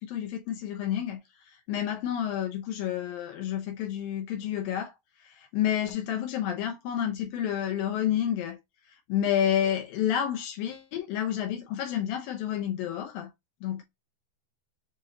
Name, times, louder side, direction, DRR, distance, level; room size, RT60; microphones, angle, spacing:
voice 1, 0.0-1.2 1.5-4.9 5.2-8.6 9.1-13.3 13.6-13.8, left 10 dB, 80° left, 2.7 m, -30 dB
6.7 x 2.6 x 2.9 m
omnidirectional pair, 4.1 m